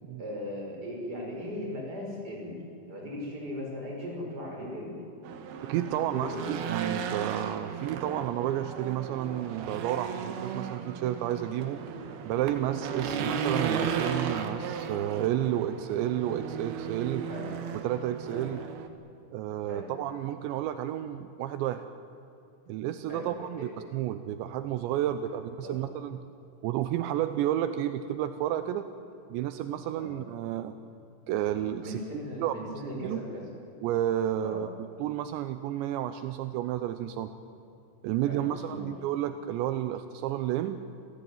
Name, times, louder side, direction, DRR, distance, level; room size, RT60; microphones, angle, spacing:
voice 1, 0.2-2.6 2.9-5.0 6.1-6.5 13.0-13.2 17.3-17.5 18.3-18.5 19.7-19.9 23.1-23.7 25.6-25.8 29.9-30.1 31.8-33.4 34.4-34.6 38.3-38.9, equal, 20° right, -1 dB, 6.3 m, -38 dB
Race car auto racing / Engine, 5.2-18.9, right 7 dB, 65° right, 3.1 m, -35 dB
voice 2, 5.7-11.8 12.2-17.3 17.8-18.6 19.3-21.9 22.7-26.2 26.6-28.9 29.3-30.7 31.3-32.5 33.0-33.2 33.8-37.3 38.0-40.8, right 12 dB, 80° right, 10 dB, 3.0 m, -31 dB
28.0 x 16.5 x 9.4 m, 2.7 s
omnidirectional pair, 5.3 m